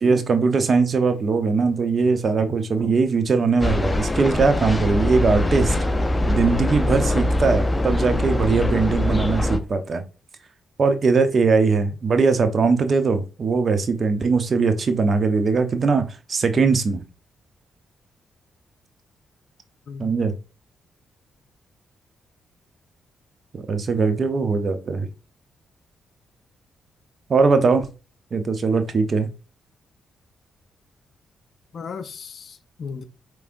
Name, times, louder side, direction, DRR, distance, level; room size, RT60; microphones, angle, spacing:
voice 1, 0.0-5.7 6.3-10.0 10.8-17.0 20.0-20.3 23.5-25.1 27.3-27.9 28.3-29.3, right 4 dB, 50° right, 0.8 m, -20 dB
sound 1, 3.6-9.6, left 1 dB, 20° left, 0.7 m, -22 dB
voice 2, 31.7-33.0, left 5 dB, 60° left, 0.5 m, -35 dB
5.0 x 3.2 x 2.6 m
hypercardioid pair, 40°, 0 cm